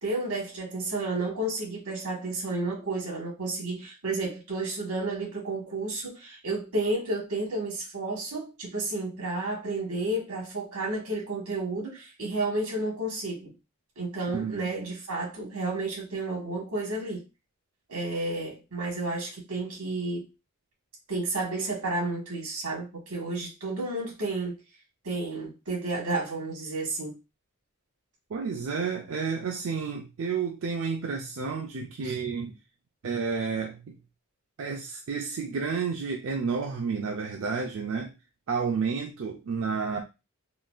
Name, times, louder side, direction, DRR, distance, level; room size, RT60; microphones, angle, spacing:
voice 1, 0.0-13.5 14.0-17.2 17.9-20.3 21.1-24.6 25.0-27.2 32.0-32.2, right 2 dB, 90° right, 1.6 m, -31 dB
voice 2, 14.3-14.9 28.3-32.6 33.0-33.9 34.6-38.1 38.5-40.0, right 5 dB, 65° right, 0.4 m, -31 dB
3.8 x 2.2 x 2.4 m
head